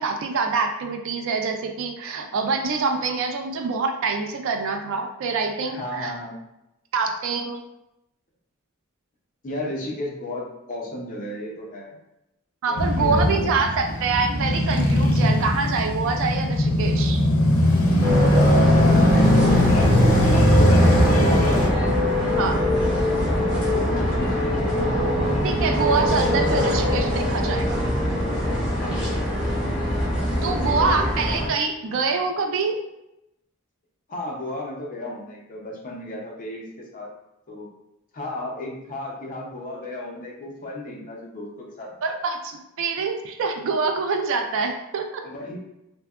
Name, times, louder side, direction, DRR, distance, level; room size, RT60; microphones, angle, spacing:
voice 1, 0.0-6.1 6.9-7.6 12.6-17.2 22.3-22.6 25.4-27.9 30.4-32.8 42.0-45.1, right 4 dB, 65° right, 4 dB, 0.3 m, -25 dB
voice 2, 5.6-6.4 9.4-12.0 12.7-13.9 18.3-21.6 22.1-23.4 23.9-24.7 28.8-29.4 30.5-31.1 34.1-37.1 37.5-37.7 38.1-41.9 45.2-45.6, left 2 dB, 40° left, -2 dB, 0.6 m, -33 dB
Male speech man speaking / Motorcycle / Idling, 12.8-21.7, left 1 dB, 85° left, 0.5 m, -19 dB
sound 1, 18.0-31.5, equal, 5° right, 0.9 m, -23 dB
2.7 x 2.2 x 2.3 m, 0.88 s
head